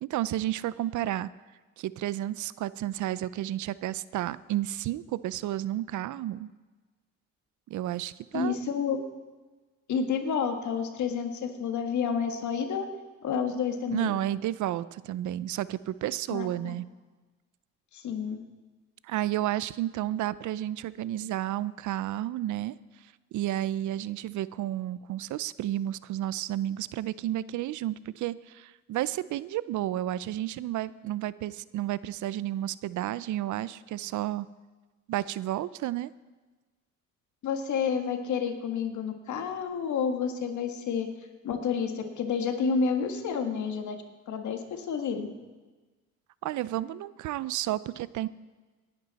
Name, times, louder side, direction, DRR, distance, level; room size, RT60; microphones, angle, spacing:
voice 1, 0.0-1.3 1.8-6.5 7.7-8.6 13.9-16.9 19.0-22.7 23.3-34.5 35.1-36.1 46.4-48.3, right 13 dB, 75° right, 18 dB, 0.5 m, -31 dB
voice 2, 8.3-9.0 9.9-12.9 13.2-14.2 16.3-16.7 17.9-18.4 37.4-41.1 41.4-45.3, left 6 dB, 70° left, 6 dB, 1.7 m, -30 dB
18.5 x 10.5 x 4.1 m, 1.3 s
cardioid pair, 90°, 30 cm